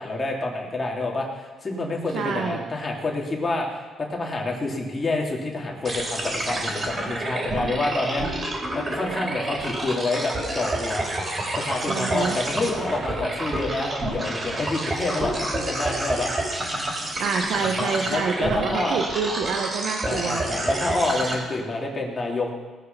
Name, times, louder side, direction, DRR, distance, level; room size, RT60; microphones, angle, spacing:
voice 1, 0.0-8.5 8.7-11.1 11.5-16.3 17.5-19.0 20.0-22.5, left 2 dB, 30° left, -1 dB, 3.0 m, -28 dB
voice 2, 2.1-2.6 11.9-12.4 17.2-20.4, right 5 dB, 75° right, 3 dB, 1.1 m, -27 dB
sound 1, 5.8-21.3, right 1 dB, 30° right, 4.2 m, -29 dB
18.5 x 6.7 x 6.8 m, 1.3 s
cardioid pair, 90°, 0 cm